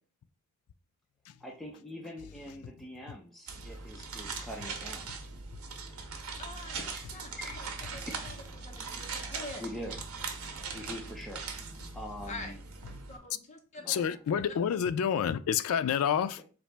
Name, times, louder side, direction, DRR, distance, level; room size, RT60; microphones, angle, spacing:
voice 1, 1.4-5.1 7.4-8.2 9.6-10.0 10.7-11.4 11.9-12.6 13.8-14.0 16.4-16.5, equal, ahead, 0.5 m, -43 dB
sound 1, 3.5-13.2, right 4 dB, 90° right, 0.7 m, -40 dB
voice 2, 6.4-9.7 12.2-12.6 13.1-14.1 14.4-14.5, left 2 dB, 35° left, 0.8 m, -46 dB
voice 3, 13.9-16.4, left 8 dB, 75° left, 0.3 m, -28 dB
4.0 x 2.8 x 3.3 m
head